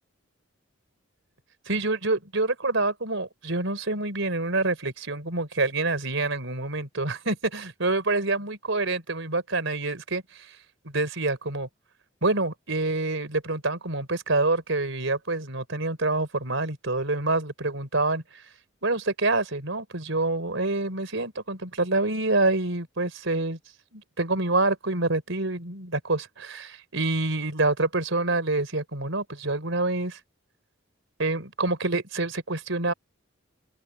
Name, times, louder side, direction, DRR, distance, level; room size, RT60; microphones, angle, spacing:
voice 1, 1.7-10.2 10.9-11.7 12.2-18.2 18.8-23.6 23.9-30.2 31.2-32.9, right 2 dB, 65° right, 4.2 m, -27 dB
open air
head